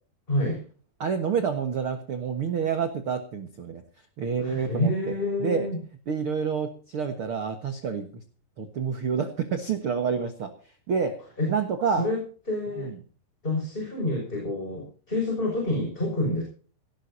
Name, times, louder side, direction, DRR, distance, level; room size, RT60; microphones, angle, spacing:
voice 1, 0.3-0.6 4.4-5.8 11.4-11.5 12.0-12.2 12.5-12.9 13.4-16.4, left 1 dB, 10° left, 0 dB, 5.7 m, -28 dB
voice 2, 1.0-3.8 4.2-5.7 6.1-8.2 8.6-10.5 10.9-12.1 12.8-13.0, right 6 dB, 70° right, 7 dB, 1.3 m, -28 dB
19.0 x 17.5 x 2.8 m, 0.41 s
omnidirectional pair, 4.8 m